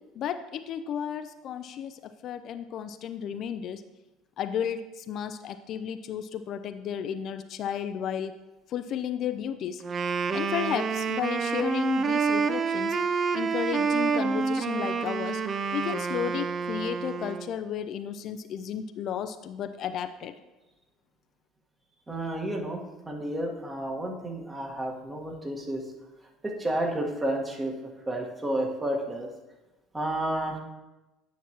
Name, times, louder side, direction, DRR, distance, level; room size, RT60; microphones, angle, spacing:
voice 1, 0.2-3.8 4.4-8.3 8.7-9.8 10.3-13.0 13.3-15.4 15.7-20.3, left 9 dB, 55° left, 9 dB, 0.4 m, -33 dB
Wind instrument woodwind instrument, 9.8-17.5, right 5 dB, 35° right, 0.4 m, -28 dB
voice 2, 22.1-22.8 23.1-25.8 26.4-27.7 28.1-29.3 29.9-30.6, right 1 dB, 20° right, 1 dB, 1.4 m, -31 dB
9.3 x 5.9 x 2.9 m, 1.1 s
hypercardioid pair, 70°, 0 cm